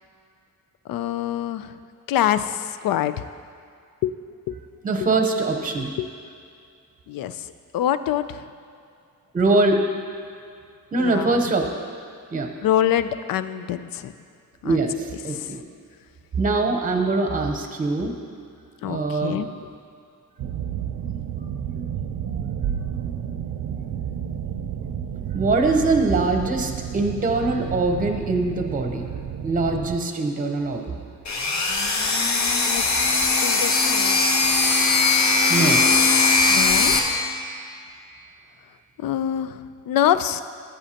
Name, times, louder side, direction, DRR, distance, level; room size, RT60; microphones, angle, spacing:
voice 1, 0.9-1.7 2.1-3.3 4.0-4.2 4.5-4.6 6.0-6.1 7.1-7.5 7.7-8.4 11.0-11.4 12.6-14.1 14.6-14.8 15.3-15.5 18.8-19.5 32.7-32.8 33.4-34.6 36.5-36.9 39.0-40.4, left 11 dB, 90° left, 12 dB, 0.5 m, -25 dB
voice 2, 4.8-5.9 9.3-9.8 10.9-11.7 12.3-12.5 14.6-15.6 16.4-18.1 18.8-19.4 25.3-29.1 29.4-31.0 35.5-35.8, right 3 dB, 25° right, 4 dB, 0.8 m, -22 dB
sound 1, 20.4-30.0, right 9 dB, 60° right, 0.5 m, -31 dB
sound 2, 31.2-37.0, left 4 dB, 55° left, 1.1 m, -19 dB
15.5 x 8.8 x 2.9 m, 2.3 s
wide cardioid pair, 170°, 33 cm